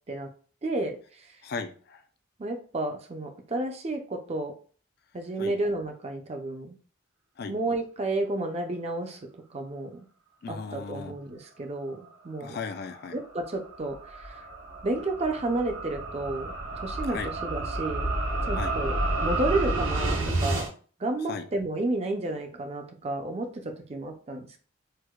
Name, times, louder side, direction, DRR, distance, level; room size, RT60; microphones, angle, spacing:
voice 1, 0.6-1.2 2.4-4.6 5.1-6.8 7.5-10.0 10.5-12.6 13.1-14.4 14.8-18.1 18.4-20.7 21.0-24.6, right 2 dB, 30° right, 4 dB, 0.4 m, -31 dB
voice 2, 1.4-2.0 5.4-5.5 7.4-7.5 10.4-11.1 12.4-13.2 17.1-17.3 18.5-18.7 21.3-21.5, left 5 dB, 50° left, 8 dB, 0.3 m, -36 dB
sound 1, 12.9-20.7, right 2 dB, 75° right, 0.9 m, -30 dB
4.5 x 2.1 x 2.3 m, 0.41 s
head